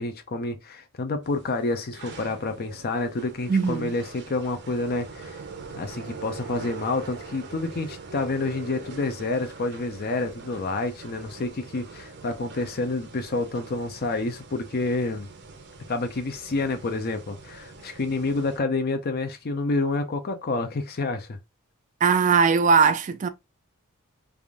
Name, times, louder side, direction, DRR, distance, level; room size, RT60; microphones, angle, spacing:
voice 1, 0.0-5.4 5.7-15.3 15.9-21.4, left 3 dB, 45° left, 0.5 m, -28 dB
sound 1, 1.2-18.6, right 4 dB, 50° right, 0.7 m, -43 dB
voice 2, 3.5-3.9 22.0-23.3, right 5 dB, 35° right, 0.3 m, -20 dB
3.4 x 2.5 x 3.4 m
head